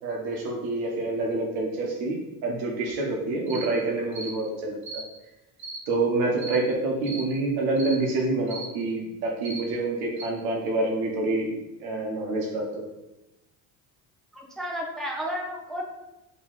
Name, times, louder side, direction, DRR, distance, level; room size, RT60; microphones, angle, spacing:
voice 1, 0.0-5.0 5.9-12.8, right 2 dB, 70° right, -1 dB, 1.1 m, -27 dB
sound 1, 3.5-3.7 4.1-4.3 4.8-5.0 5.6-5.8 6.4-6.6 7.0-7.3 7.8-8.0 8.5-8.7 9.4-9.6 10.2-10.3, right 3 dB, 85° right, 1.2 m, -37 dB
voice 2, 14.3-15.8, equal, ahead, -2 dB, 0.9 m, -32 dB
3.3 x 3.0 x 3.9 m, 0.97 s
hypercardioid pair, 65°, 48 cm